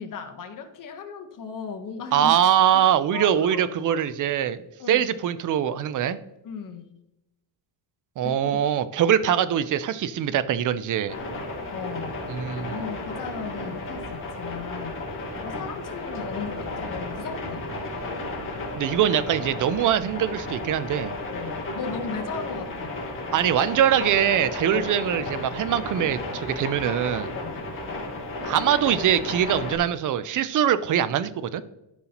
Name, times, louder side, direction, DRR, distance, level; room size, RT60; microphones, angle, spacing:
voice 1, 0.0-2.3 2.7-2.8 3.1-4.0 4.8-5.1 6.4-6.9 8.2-8.6 11.7-12.2 12.6-15.0 15.4-17.7 21.3-22.9 24.7-24.9 27.3-27.7, left 5 dB, 45° left, 5 dB, 1.1 m, -36 dB
voice 2, 2.1-6.2 8.2-11.2 12.3-12.8 18.8-21.2 23.3-27.3 28.4-31.6, right 10 dB, 45° right, 15 dB, 0.4 m, -23 dB
sound 1, 11.1-29.8, left 2 dB, 25° left, 2.3 m, -33 dB
13.5 x 5.6 x 2.9 m, 0.89 s
cardioid pair, 170°, 46 cm